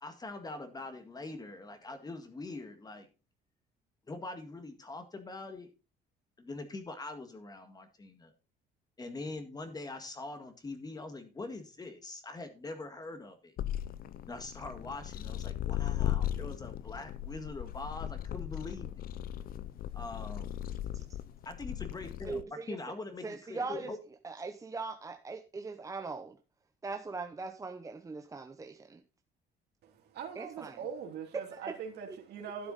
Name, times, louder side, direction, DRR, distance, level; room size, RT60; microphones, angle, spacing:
voice 1, 0.0-3.1 4.1-5.7 6.4-8.3 9.0-13.5 14.3-19.0 19.9-20.5 21.5-22.4 22.7-24.0, left 2 dB, 25° left, 1.9 m, -43 dB
sound 1, 13.6-22.4, left 12 dB, 60° left, 0.7 m, -37 dB
voice 2, 22.3-22.8 23.2-23.9 24.2-26.4 26.8-29.0 30.4-30.8 31.6-31.7 32.1-32.2, right 4 dB, 20° right, 0.8 m, -40 dB
voice 3, 29.8-32.7, right 7 dB, 75° right, 2.9 m, -42 dB
12.0 x 7.0 x 4.1 m
cardioid pair, 110°, 17 cm